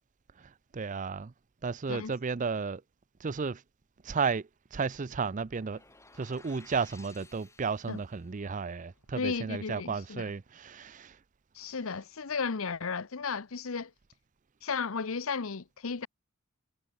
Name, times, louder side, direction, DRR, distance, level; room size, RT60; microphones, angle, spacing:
voice 1, 0.4-1.3 1.6-2.8 3.2-3.6 4.0-5.8 6.2-11.2, right 5 dB, 35° right, 0.5 m, -33 dB
sound 1, 5.0-10.1, left 1 dB, 90° left, 6.6 m, -70 dB
sound 2, 5.5-8.3, left 3 dB, 15° left, 5.3 m, -57 dB
voice 2, 9.2-10.2 11.5-13.9 14.6-16.1, left 5 dB, 65° left, 0.8 m, -34 dB
head